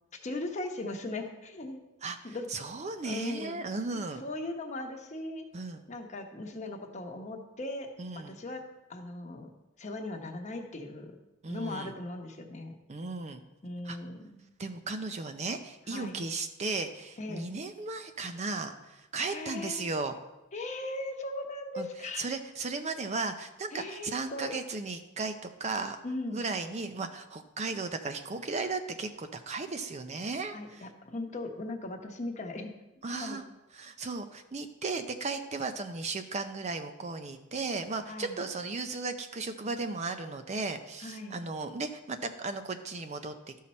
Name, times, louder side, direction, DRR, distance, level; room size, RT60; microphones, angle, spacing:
voice 1, 0.2-1.8 2.2-2.5 3.0-3.6 4.2-5.4 5.9-8.6 8.9-9.5 9.8-11.1 11.5-12.8 13.6-14.4 15.9-16.2 17.2-17.5 19.2-19.9 20.5-22.3 23.7-24.5 26.0-26.4 30.5-32.7 33.1-33.4 38.1-38.4 41.0-41.4, left 2 dB, 35° left, 3 dB, 1.0 m, -38 dB
voice 2, 2.5-4.2 5.5-5.8 8.0-8.4 11.4-11.9 12.9-13.4 13.8-14.0 14.6-20.2 21.8-21.9 22.2-25.3 25.6-26.0 26.3-30.9 33.0-33.4 33.7-43.3, right 3 dB, 35° right, 8 dB, 0.5 m, -35 dB
12.5 x 5.6 x 4.3 m, 0.99 s
head